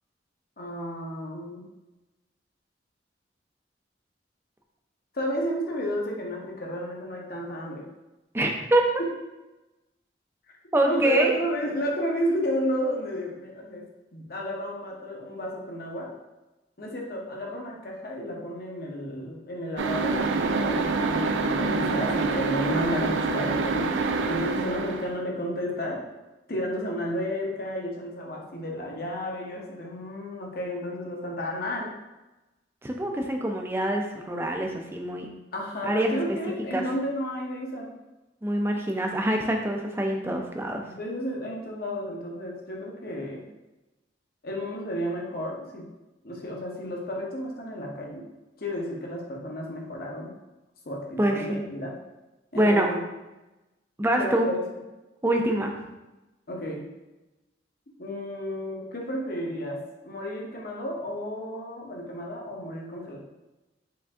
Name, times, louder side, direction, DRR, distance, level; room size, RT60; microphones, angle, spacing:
voice 1, 0.6-1.6 5.1-7.8 9.0-9.1 10.9-13.8 14.1-16.1 16.8-26.0 26.5-31.9 35.5-37.9 40.9-43.4 44.4-45.8 46.2-48.2 48.6-50.3 50.8-51.5 51.7-51.9 52.5-53.0 54.1-54.6 56.5-56.8 58.0-63.2, equal, 50° left, -1 dB, 0.8 m, -32 dB
voice 2, 8.3-8.8 10.7-11.3 32.8-35.3 35.8-36.2 36.7-36.8 38.4-40.8 51.2-51.6 52.5-52.9 54.0-54.5 55.2-55.7, right 1 dB, 15° right, 2 dB, 0.4 m, -25 dB
sound 1, 19.8-25.2, right 4 dB, 90° right, 0.4 m, -26 dB
4.9 x 2.6 x 3.5 m, 1.0 s
head